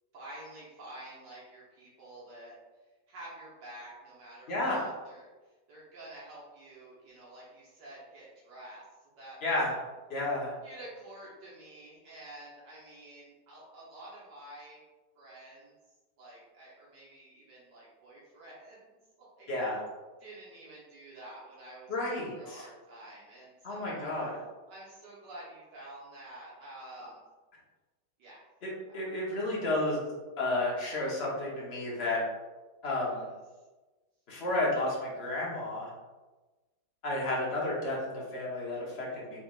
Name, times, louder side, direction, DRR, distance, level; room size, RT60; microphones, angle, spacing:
voice 1, 0.1-2.5 3.1-8.8 9.2-9.6 10.6-14.8 15.1-15.7 16.2-18.8 19.2-19.5 20.2-24.0 24.7-27.2 28.2-28.4 28.9-29.0 33.0-33.4, right 1 dB, 75° right, -7 dB, 1.6 m, -49 dB
voice 2, 4.5-4.9 9.4-9.7 10.1-10.5 19.5-19.8 21.9-22.7 23.6-24.4 28.6-30.0 30.4-32.2 32.8-33.2 34.3-35.9 37.0-39.4, left 2 dB, 40° left, -5 dB, 1.1 m, -32 dB
4.0 x 3.3 x 2.4 m, 1.2 s
omnidirectional pair, 1.9 m